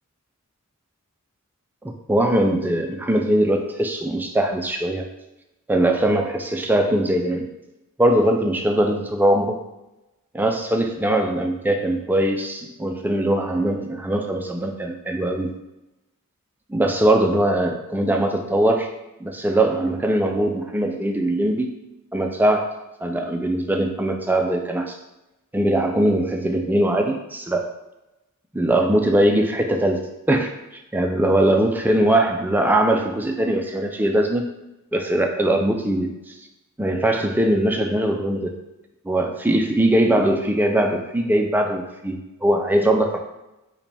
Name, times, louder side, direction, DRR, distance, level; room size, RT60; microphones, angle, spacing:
voice 1, 1.8-5.1 5.7-7.5 8.0-9.6 10.3-15.5 16.7-18.9 19.2-21.8 22.1-22.6 23.0-25.0 25.5-27.7 28.5-30.5 30.9-34.4 34.9-36.1 36.8-38.6 39.1-43.2, right 1 dB, 10° right, 3 dB, 0.3 m, -21 dB
4.8 x 2.2 x 3.3 m, 0.96 s
head